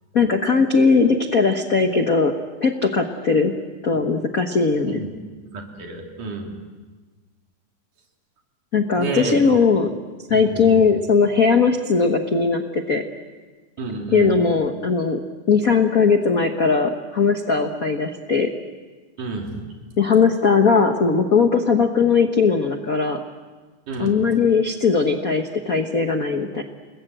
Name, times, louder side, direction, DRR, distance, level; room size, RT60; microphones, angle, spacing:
voice 1, 0.1-2.3 2.6-3.5 3.8-5.0 8.7-9.9 10.3-13.0 14.1-15.2 15.5-18.5 20.0-23.2 24.0-26.6, left 5 dB, 70° left, 5 dB, 0.8 m, -19 dB
voice 2, 5.5-6.6 9.0-9.6 10.3-10.8 13.8-14.3 19.2-19.6 23.9-24.2, right 3 dB, 80° right, 1 dB, 4.8 m, -29 dB
29.5 x 21.0 x 7.9 m, 1.4 s
omnidirectional pair, 3.6 m